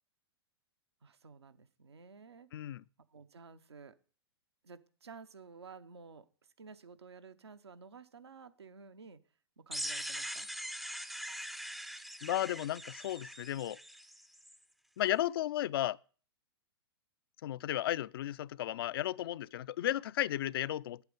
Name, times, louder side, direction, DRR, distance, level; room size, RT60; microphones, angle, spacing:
voice 1, 1.0-2.7 3.1-4.0 4.6-6.3 6.6-9.2 9.6-10.5, right 5 dB, 85° right, 0.8 m, -53 dB
voice 2, 2.5-2.8 12.2-13.8 15.0-16.0 17.4-21.0, left 13 dB, 65° left, 0.4 m, -34 dB
sound 1, 9.7-14.6, equal, ahead, 0.4 m, -42 dB
8.4 x 8.2 x 5.2 m
hypercardioid pair, 110°, 13 cm